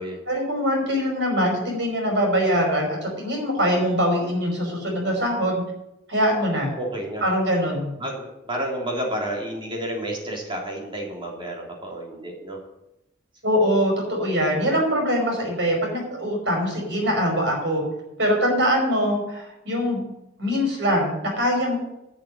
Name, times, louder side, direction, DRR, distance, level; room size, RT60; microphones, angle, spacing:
voice 1, 0.3-5.6 6.1-6.7 7.2-7.9 13.4-17.8 18.2-20.0 20.4-21.8, equal, 75° right, 0 dB, 5.4 m, -23 dB
voice 2, 6.8-7.3 8.0-12.6, right 1 dB, 30° right, -1 dB, 3.3 m, -30 dB
11.0 x 6.6 x 8.8 m, 0.89 s
head